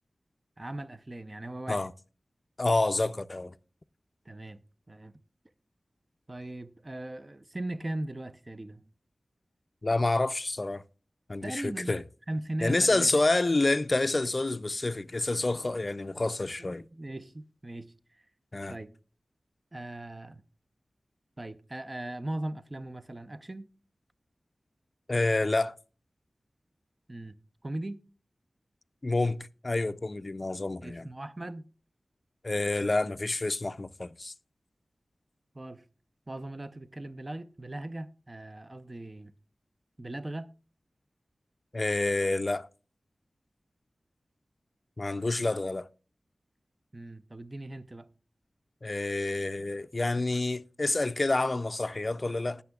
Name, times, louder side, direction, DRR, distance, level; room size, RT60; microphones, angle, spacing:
voice 1, 0.6-1.9 4.3-4.6 4.9-5.1 6.3-8.9 11.4-12.0 12.3-13.2 16.6-18.2 18.7-19.0 19.7-20.4 21.4-23.7 27.1-27.4 27.6-28.0 30.8-31.7 35.5-35.8 36.3-39.3 40.0-40.5 46.9-48.1, right 1 dB, 35° right, 0.6 m, -39 dB
voice 2, 2.6-3.5 9.8-10.8 11.3-12.0 12.6-16.8 18.5-18.8 25.1-25.7 29.0-31.0 32.4-34.3 41.7-42.7 45.0-45.9 48.8-52.6, left 2 dB, 45° left, 0.4 m, -28 dB
19.5 x 6.9 x 2.3 m
wide cardioid pair, 60°, 0 cm